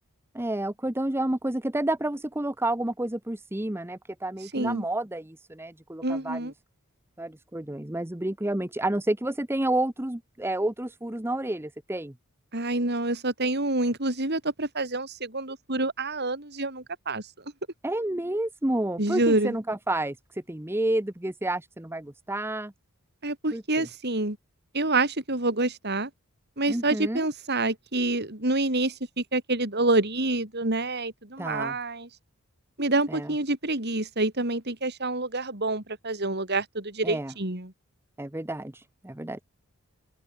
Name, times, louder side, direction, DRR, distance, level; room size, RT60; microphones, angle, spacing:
voice 1, 0.3-6.5 7.2-12.1 17.8-22.7 23.5-23.9 26.7-27.3 31.4-31.8 33.1-33.3 37.0-37.3 38.2-39.4, right 1 dB, 10° right, 0.8 m, -30 dB
voice 2, 4.5-4.8 6.0-6.5 12.5-17.2 19.0-19.6 23.2-24.4 24.7-26.1 26.6-32.1 32.8-37.7, right 2 dB, 50° right, 4.1 m, -27 dB
open air
head